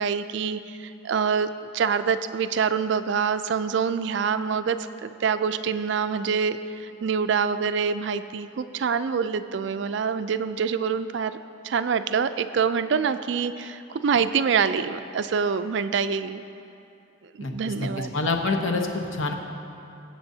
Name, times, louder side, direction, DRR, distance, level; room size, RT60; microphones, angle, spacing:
voice 1, 0.0-11.4 11.6-16.4 17.5-18.1, right 6 dB, 60° right, 11 dB, 0.4 m, -26 dB
voice 2, 17.4-19.3, left 3 dB, 85° left, 3 dB, 1.0 m, -27 dB
21.5 x 7.8 x 2.8 m, 2.7 s
head